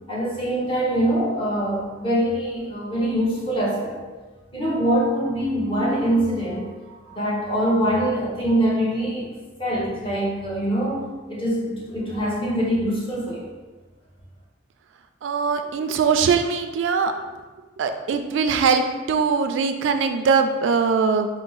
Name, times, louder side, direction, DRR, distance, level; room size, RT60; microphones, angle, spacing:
voice 1, 0.1-4.0 4.5-9.3 9.6-13.4, right 1 dB, 30° left, -5 dB, 1.0 m, -24 dB
voice 2, 15.2-17.1 17.8-21.3, right 5 dB, 70° right, 7 dB, 0.3 m, -21 dB
4.6 x 2.0 x 3.9 m, 1.3 s
head